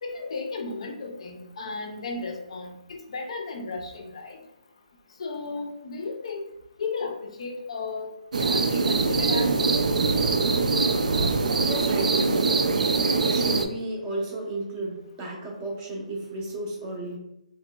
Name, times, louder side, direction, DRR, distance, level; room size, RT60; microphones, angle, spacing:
voice 1, 0.0-4.4 5.2-6.5 6.8-9.8, left 3 dB, 50° left, 3 dB, 0.4 m, -34 dB
sound 1, 8.3-13.6, right 3 dB, 80° right, 0.3 m, -23 dB
voice 2, 11.6-12.6 13.3-17.2, right 2 dB, 20° right, -2 dB, 0.6 m, -33 dB
2.8 x 2.8 x 2.2 m, 0.81 s
hypercardioid pair, 165°, 4 cm